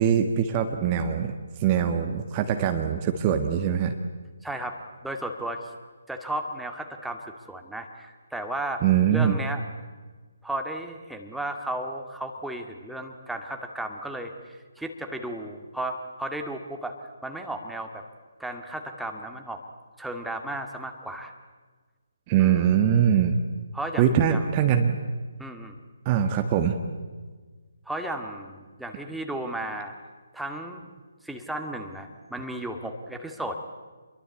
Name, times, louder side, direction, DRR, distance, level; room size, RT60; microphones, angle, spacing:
voice 1, 0.0-1.3 1.6-3.9 8.8-9.3 22.3-23.4 24.0-25.0 26.0-26.7, right 8 dB, 25° right, 6 dB, 1.5 m, -22 dB
voice 2, 4.4-5.7 6.1-8.8 9.1-9.6 10.4-17.0 17.2-18.0 18.4-19.6 20.0-21.3 22.4-22.7 23.7-24.5 25.4-25.8 27.9-30.0 30.3-30.9 31.2-33.6, right 1 dB, ahead, 3 dB, 2.1 m, -34 dB
27.5 x 22.5 x 8.4 m, 1.4 s
figure-of-eight pair, 140°, 0 cm